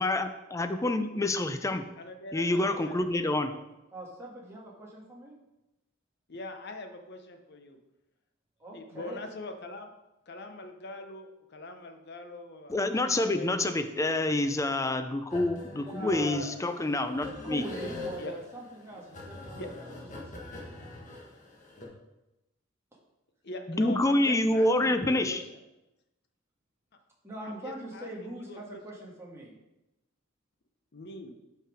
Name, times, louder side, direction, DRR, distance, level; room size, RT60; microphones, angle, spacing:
voice 1, 0.0-1.9 2.3-3.5 12.7-17.6 23.7-25.4, left 2 dB, 15° left, 9 dB, 0.4 m, -27 dB
voice 2, 2.0-3.6 6.3-7.8 8.7-9.9 10.3-13.8 15.9-16.1 18.2-18.3 19.6-19.7 23.4-25.4 27.4-28.8 30.9-31.3, left 2 dB, 55° left, 6 dB, 0.8 m, -43 dB
voice 3, 3.9-5.4 8.6-9.2 15.7-16.5 17.2-19.8 20.2-20.8 27.2-29.5, right 1 dB, 15° right, -4 dB, 1.6 m, -42 dB
sound 1, 15.3-21.9, left 2 dB, 40° left, 1.4 m, -43 dB
5.8 x 5.5 x 5.0 m, 0.96 s
head